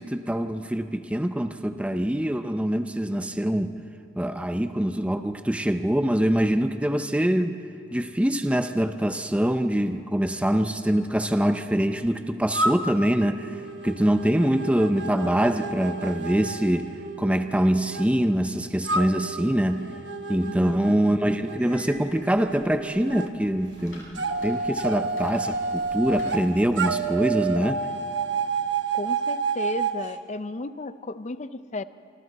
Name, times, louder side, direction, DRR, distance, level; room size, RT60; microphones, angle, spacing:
voice 1, 0.0-3.8 4.2-7.6 7.9-13.6 13.8-16.9 17.2-19.9 20.3-27.8, right 1 dB, 5° right, 8 dB, 0.6 m, -24 dB
sound 1, 12.5-18.1 18.8-23.3 24.2-26.4 26.8-30.0, right 4 dB, 65° right, 1.1 m, -30 dB
voice 2, 20.4-21.0 28.9-31.8, left 2 dB, 40° left, 13 dB, 0.6 m, -34 dB
sound 2, 21.6-27.4, left 1 dB, 90° left, 7.3 m, -51 dB
27.5 x 25.0 x 4.1 m, 2.5 s
head